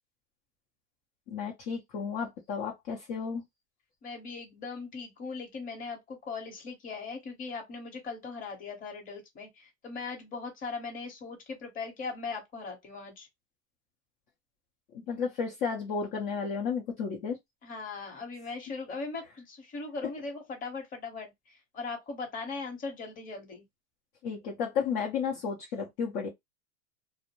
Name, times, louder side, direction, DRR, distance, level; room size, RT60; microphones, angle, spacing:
voice 1, 1.3-3.4 14.9-17.4 24.2-26.3, left 6 dB, 45° left, 0.7 m, -33 dB
voice 2, 4.0-13.3 17.6-23.6, left 4 dB, 25° left, 1.0 m, -39 dB
2.5 x 2.1 x 2.9 m
supercardioid pair, 140°, 35 cm